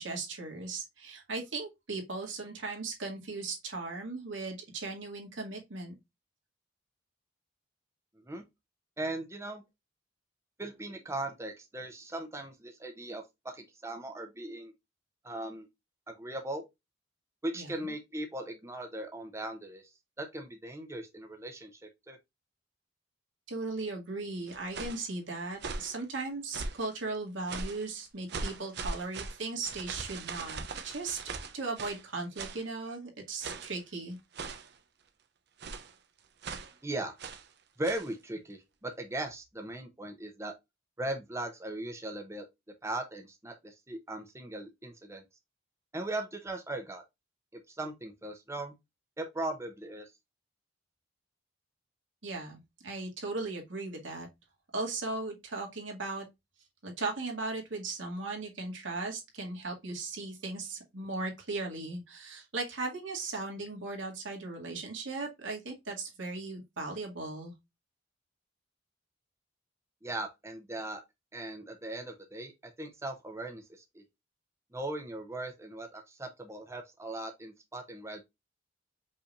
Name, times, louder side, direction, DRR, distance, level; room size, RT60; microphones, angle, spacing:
voice 1, 0.0-5.9 17.5-17.9 23.5-31.2 31.5-34.2 52.2-54.3 54.7-56.3 56.8-67.5, right 3 dB, 85° right, 1.9 m, -37 dB
voice 2, 9.0-9.6 10.6-14.7 15.2-15.7 16.1-16.6 17.4-19.8 20.2-21.8 22.1-22.2 36.8-37.2 37.8-40.5 41.0-42.4 42.8-45.2 45.9-47.0 47.7-48.7 49.2-50.1 70.0-71.0 71.3-74.0 74.7-78.3, right 1 dB, 15° right, 0.8 m, -38 dB
sound 1, 24.5-25.1 25.5-26.0 26.5-26.9 27.5-27.9 28.3-32.0 32.4-32.6 33.4-33.8 34.3-34.8 35.6-35.9 36.4-36.7 37.2-37.5 37.8-38.1, right 4 dB, 60° right, 0.7 m, -40 dB
5.3 x 3.4 x 2.5 m
head